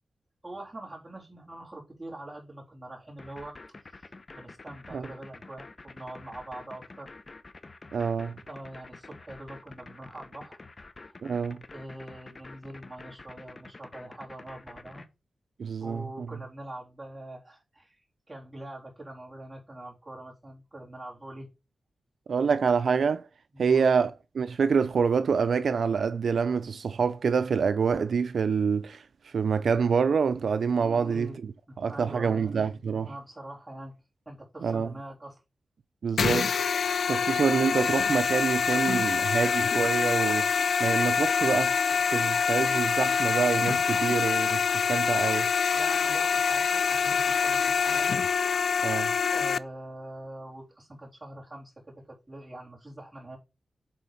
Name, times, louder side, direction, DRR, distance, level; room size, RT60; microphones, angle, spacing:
voice 1, 0.4-3.6 3.9-7.2 8.5-10.6 11.1-11.2 11.7-15.0 15.8-21.5 23.5-23.9 30.9-31.4 31.7-32.7 33.0-34.0 34.3-35.4 45.7-48.1 49.3-53.4, right 1 dB, 20° right, 3.4 m, -43 dB
sound 1, 3.2-15.1, left 3 dB, 40° left, 0.8 m, -48 dB
voice 2, 7.9-8.4 11.2-11.6 15.6-16.3 22.3-23.3 23.6-31.5 31.8-33.1 34.6-34.9 36.0-36.8 37.1-45.5 48.8-49.1, right 6 dB, 80° right, 0.4 m, -27 dB
sound 2, 36.2-49.6, left 6 dB, 80° left, 0.3 m, -25 dB
8.6 x 3.9 x 5.1 m
wide cardioid pair, 95°, 0 cm